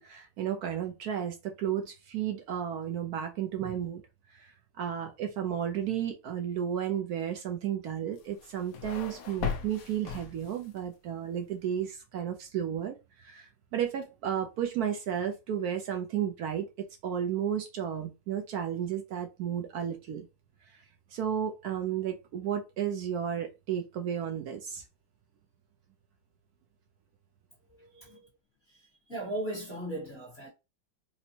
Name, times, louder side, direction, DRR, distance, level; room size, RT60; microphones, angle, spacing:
voice 1, 0.0-4.0 4.3-20.3 20.7-20.8 21.1-24.8, right 9 dB, 70° right, 0.9 m, -33 dB
sound 1, 8.2-10.8, left 7 dB, 65° left, 0.9 m, -38 dB
voice 2, 27.8-28.2 29.1-30.5, right 1 dB, 40° left, 1.3 m, -37 dB
4.3 x 2.1 x 2.8 m
omnidirectional pair, 2.0 m